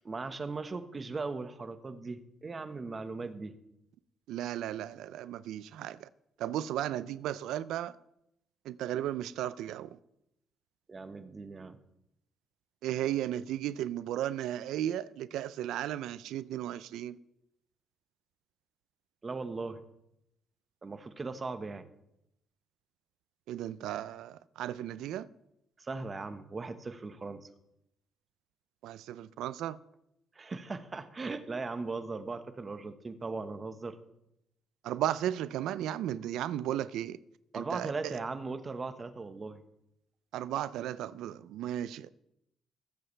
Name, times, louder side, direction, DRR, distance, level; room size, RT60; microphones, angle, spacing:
voice 1, 0.0-3.5 10.9-11.8 19.2-19.8 20.8-21.9 25.8-27.5 30.3-34.0 37.5-39.6, right 3 dB, 30° right, 1.2 m, -38 dB
voice 2, 4.3-6.1 6.4-7.9 8.7-10.0 12.8-17.2 23.5-25.3 28.8-29.8 34.8-37.2 37.5-38.1 40.3-42.1, right 12 dB, 85° right, 0.4 m, -35 dB
21.0 x 7.8 x 3.3 m
cardioid pair, 90°, 0 cm